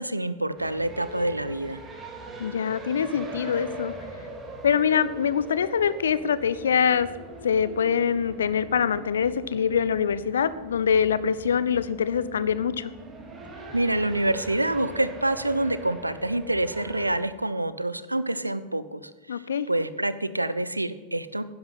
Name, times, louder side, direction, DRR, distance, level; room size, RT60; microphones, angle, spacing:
voice 1, 0.0-1.8 13.7-21.4, right 1 dB, 85° right, 15 dB, 0.6 m, -27 dB
sound 1, 0.6-17.1, right 2 dB, 20° right, 2.7 m, -42 dB
voice 2, 2.4-3.9 4.6-7.1 7.4-12.9 19.3-19.7, left 7 dB, 65° left, 16 dB, 0.6 m, -24 dB
11.5 x 10.5 x 5.7 m, 1.3 s
figure-of-eight pair, 90°, 0 cm